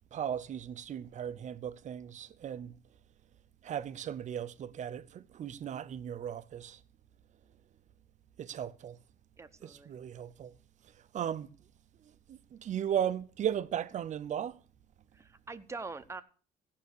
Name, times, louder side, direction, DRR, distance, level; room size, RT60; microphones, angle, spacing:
voice 1, 0.1-2.8 3.6-6.8 8.4-9.0 9.6-10.5 11.0-11.5 12.3-14.6, right 9 dB, 45° right, 0.7 m, -36 dB
voice 2, 9.4-9.9 15.1-16.2, right 3 dB, 15° right, 0.9 m, -43 dB
16.0 x 5.8 x 6.6 m
cardioid pair, 110°, 17 cm